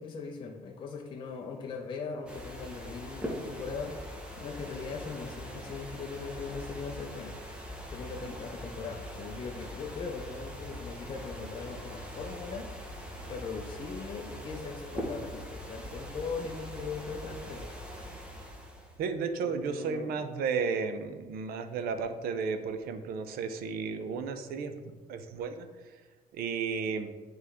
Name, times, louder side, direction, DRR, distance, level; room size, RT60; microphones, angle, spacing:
voice 1, 0.0-4.0 4.4-7.4 7.9-12.7 13.2-17.7 19.4-20.3, left 4 dB, 30° left, 1 dB, 0.5 m, -40 dB
sound 1, 2.3-19.1, equal, 5° right, 0.7 m, -42 dB
voice 2, 19.0-25.7 26.3-27.1, right 5 dB, 70° right, 9 dB, 0.6 m, -33 dB
9.1 x 3.2 x 3.5 m, 1.4 s
cardioid pair, 170°, 16 cm